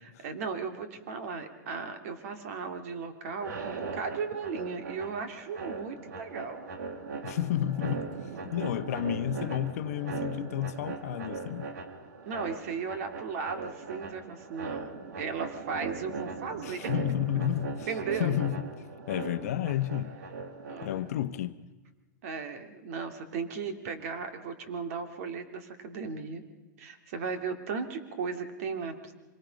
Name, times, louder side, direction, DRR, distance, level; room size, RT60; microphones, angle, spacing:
voice 1, 0.2-6.6 8.7-8.8 12.3-16.9 17.9-18.4 20.7-21.2 22.2-26.4 26.8-29.1, right 5 dB, 50° right, 2.4 m, -36 dB
sound 1, 3.3-21.2, right 4 dB, 75° right, 2.1 m, -39 dB
voice 2, 7.2-8.1 8.4-11.7 16.6-17.9 18.2-18.7 19.1-20.1 20.8-21.5, left 11 dB, 55° left, 1.0 m, -31 dB
26.0 x 19.0 x 5.2 m
hypercardioid pair, 160°, 10 cm